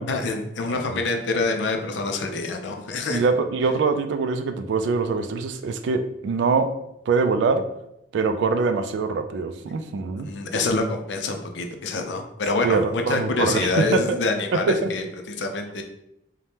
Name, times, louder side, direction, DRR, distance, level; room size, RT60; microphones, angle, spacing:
voice 1, 0.1-3.2 10.2-15.8, left 3 dB, 75° left, 4 dB, 0.4 m, -26 dB
voice 2, 0.7-1.0 3.1-6.7 7.1-7.6 8.1-10.3 12.6-14.2 14.8-14.9, right 4 dB, 75° right, 8 dB, 0.3 m, -23 dB
3.3 x 2.1 x 2.7 m, 0.82 s
head